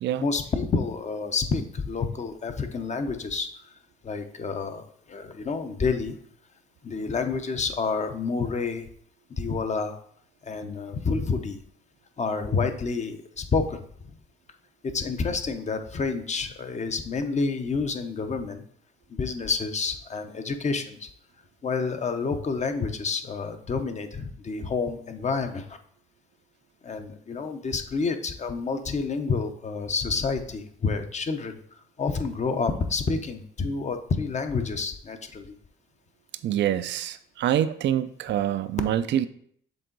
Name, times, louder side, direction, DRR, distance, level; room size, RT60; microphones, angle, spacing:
voice 1, 0.2-3.5 4.0-6.2 6.8-8.9 9.4-10.0 10.4-11.6 12.2-14.2 14.8-18.6 19.1-21.1 21.6-25.8 26.8-31.5 32.0-35.5, left 4 dB, 35° left, 7 dB, 0.8 m, -29 dB
voice 2, 36.4-39.3, right 11 dB, 65° right, 12 dB, 0.4 m, -26 dB
6.8 x 3.7 x 3.9 m, 0.62 s
cardioid pair, 90°, 20 cm